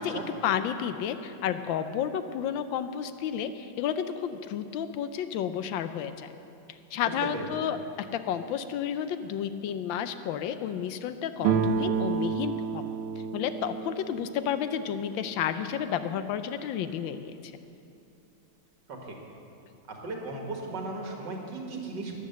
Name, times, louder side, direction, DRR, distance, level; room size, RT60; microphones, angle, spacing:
voice 1, 0.0-6.3 6.9-12.8 13.3-17.3, left 9 dB, 80° left, 11 dB, 1.3 m, -31 dB
voice 2, 7.0-7.4 18.9-19.2 19.9-22.1, right 3 dB, 60° right, 0 dB, 2.3 m, -36 dB
sound 1, 11.4-15.0, right 6 dB, 85° right, 1.5 m, -30 dB
13.5 x 9.6 x 6.7 m, 2.6 s
omnidirectional pair, 2.1 m